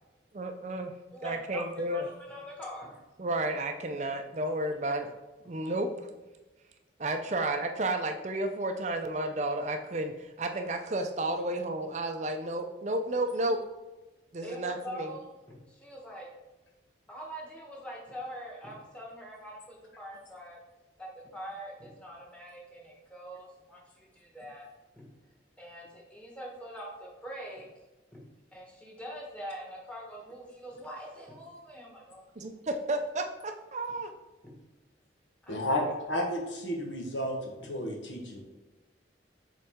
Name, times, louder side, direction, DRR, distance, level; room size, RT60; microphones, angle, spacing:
voice 1, 0.3-0.9 1.2-2.1 3.2-5.1 5.4-6.1 7.0-13.6 14.3-15.1 32.4-34.1, right 1 dB, 40° right, 6 dB, 0.5 m, -32 dB
voice 2, 1.1-1.6 1.9-3.0 7.3-7.5 14.4-16.3 17.1-20.6 21.0-24.7 24.9-25.1 25.6-27.7 28.1-32.2 34.4-34.6 35.4-35.6 37.6-37.7, equal, 5° left, -3 dB, 1.3 m, -44 dB
voice 3, 35.5-38.4, left 1 dB, 80° left, 1 dB, 1.3 m, -32 dB
6.9 x 4.0 x 3.6 m, 1.1 s
head